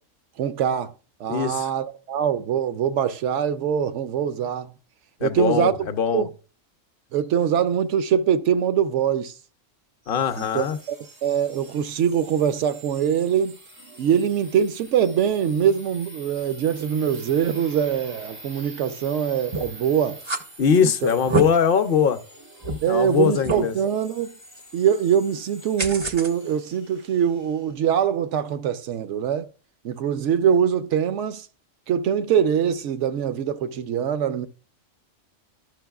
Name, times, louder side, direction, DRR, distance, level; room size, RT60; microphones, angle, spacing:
voice 1, 0.4-0.9 1.2-4.7 5.2-5.9 6.1-6.3 7.1-9.3 10.4-11.0 11.2-13.6 14.0-20.2 20.8-21.1 22.8-24.3 24.7-29.5 29.8-31.5 31.9-34.5, right 8 dB, 75° right, 0.9 m, -23 dB
voice 2, 1.3-1.7 5.2-6.3 10.1-10.8 20.6-22.2 22.9-23.7, left 7 dB, 55° left, 0.7 m, -21 dB
sound 1, 10.0-27.7, right 2 dB, 90° right, 3.4 m, -45 dB
sound 2, 19.5-19.8 20.2-20.4 21.1-21.4 22.0-22.1 22.6-22.8 23.4-23.6 25.8-26.3, right 2 dB, 35° right, 0.4 m, -25 dB
12.5 x 5.9 x 2.3 m
omnidirectional pair, 1.3 m